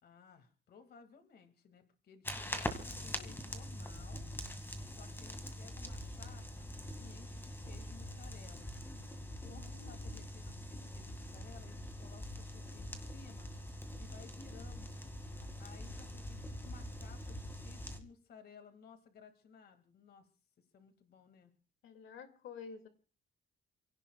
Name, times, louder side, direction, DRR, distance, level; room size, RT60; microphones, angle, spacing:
voice 1, 0.0-4.3 4.9-8.7 9.4-13.5 14.0-14.9 15.4-20.3 20.6-21.5, left 5 dB, 50° left, 7 dB, 2.1 m, -58 dB
sound 1, 2.2-18.0, left 1 dB, 10° left, 2.0 m, -44 dB
voice 2, 2.5-3.4 9.5-10.3 21.8-22.9, left 6 dB, 70° left, 7 dB, 2.3 m, -52 dB
29.5 x 17.5 x 2.3 m, 0.36 s
cardioid pair, 160°, 21 cm